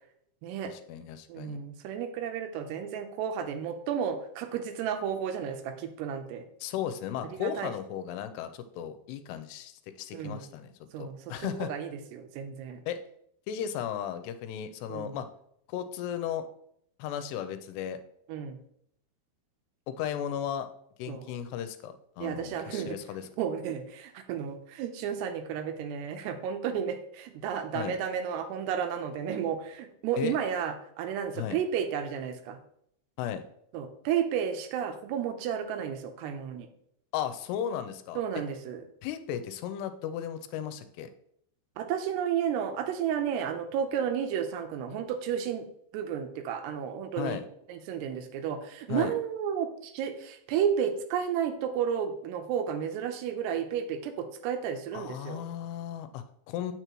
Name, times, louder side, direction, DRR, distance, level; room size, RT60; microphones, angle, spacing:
voice 1, 0.6-1.6 6.6-11.7 12.9-13.0 13.5-15.3 15.7-16.5 17.0-18.0 19.9-20.7 21.0-23.3 27.7-28.0 30.2-30.4 31.4-31.6 33.2-33.4 37.1-38.2 39.0-41.1 47.2-47.4 48.9-49.1 54.9-56.7, left 9 dB, 85° left, 10 dB, 2.7 m, -35 dB
voice 2, 1.3-6.4 7.4-7.7 10.1-10.5 10.9-12.8 14.9-15.2 18.3-18.6 21.1-21.2 22.2-23.0 23.4-32.6 33.7-36.7 38.2-38.8 41.8-45.7 45.9-47.4 47.7-55.4, right 8 dB, 85° right, 7 dB, 2.9 m, -32 dB
8.0 x 6.2 x 3.0 m, 0.70 s
omnidirectional pair, 4.7 m